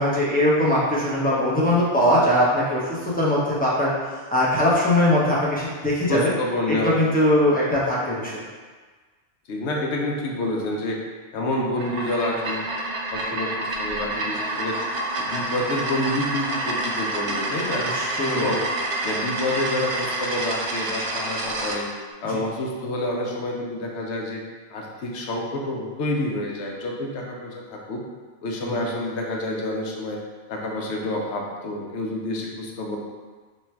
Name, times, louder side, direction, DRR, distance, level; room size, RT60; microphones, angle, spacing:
voice 1, 0.0-3.9 4.3-6.3 6.7-8.4 13.2-13.3 17.8-18.5 22.3-22.4 28.6-28.8, left 1 dB, 10° left, -7 dB, 0.5 m, -21 dB
voice 2, 6.1-6.9 7.4-7.5 9.5-11.0 11.3-12.6 13.1-14.8 15.2-17.9 18.3-18.6 19.0-21.9 22.2-24.4 24.7-28.0 28.4-30.2 30.5-33.0, left 1 dB, 75° left, 0 dB, 0.9 m, -28 dB
sound 1, 11.7-21.8, right 2 dB, 70° right, 0.9 m, -28 dB
3.2 x 2.3 x 4.3 m, 1.4 s
omnidirectional pair, 1.2 m